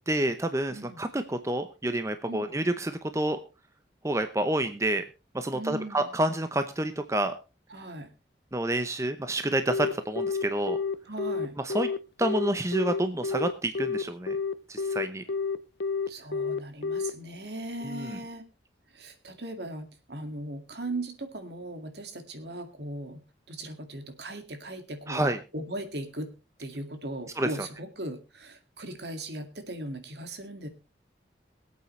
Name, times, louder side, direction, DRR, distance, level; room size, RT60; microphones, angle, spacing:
voice 1, 0.1-3.4 4.0-5.0 5.3-7.3 8.5-10.8 11.6-11.9 12.2-14.4 14.7-15.2 17.8-18.2 25.1-25.4 27.4-27.5, right 1 dB, 15° right, 9 dB, 0.7 m, -28 dB
voice 2, 0.7-1.0 2.3-2.5 5.5-6.1 7.7-8.1 11.1-11.6 16.1-18.5 18.9-23.2 23.5-26.3 26.6-30.7, right 1 dB, 70° right, 7 dB, 2.1 m, -38 dB
Telephone, 9.7-17.1, left 4 dB, 80° left, 0.7 m, -29 dB
22.5 x 8.4 x 3.2 m, 0.29 s
head